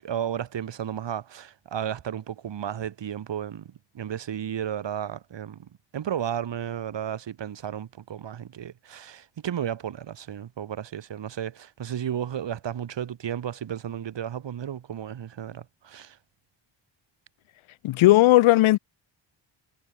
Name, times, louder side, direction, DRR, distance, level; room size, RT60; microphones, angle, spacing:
voice 1, 0.0-16.2, right 9 dB, 65° right, 1.6 m, -33 dB
voice 2, 17.8-18.8, left 16 dB, 85° left, 0.5 m, -16 dB
wide cardioid pair, 105°, 47 cm